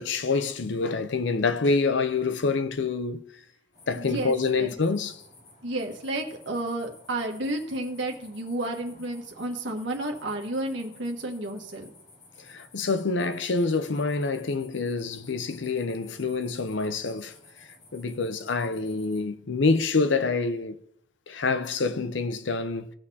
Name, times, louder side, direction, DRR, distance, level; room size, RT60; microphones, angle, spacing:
voice 1, 0.0-3.3 3.9-5.2 12.4-20.8 21.3-22.9, left 4 dB, 75° left, 0.6 m, -27 dB
sound 1, 3.7-19.2, left 2 dB, 50° left, 3.8 m, -54 dB
voice 2, 3.9-4.7 5.6-11.9, right 1 dB, 75° right, 1.4 m, -32 dB
18.0 x 6.4 x 2.8 m
head